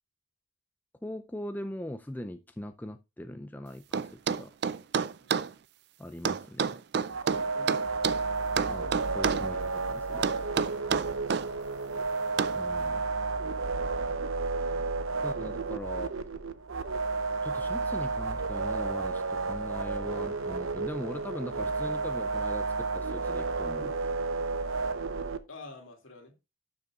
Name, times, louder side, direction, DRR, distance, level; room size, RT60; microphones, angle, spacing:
voice 1, 1.0-4.5 6.0-6.8 8.6-10.7 12.5-13.1 15.2-16.1 17.4-24.0, left 1 dB, 10° left, 0.4 m, -41 dB
sound 1, 3.9-5.5 6.3-8.2 8.6-9.5 10.2-11.5 12.4-12.6, right 6 dB, 55° right, 0.4 m, -29 dB
sound 2, 7.1-25.4, right 3 dB, 80° right, 0.7 m, -32 dB
voice 2, 7.5-8.0 8.6-9.1 25.5-26.3, left 3 dB, 75° left, 2.5 m, -49 dB
12.0 x 6.8 x 2.4 m
head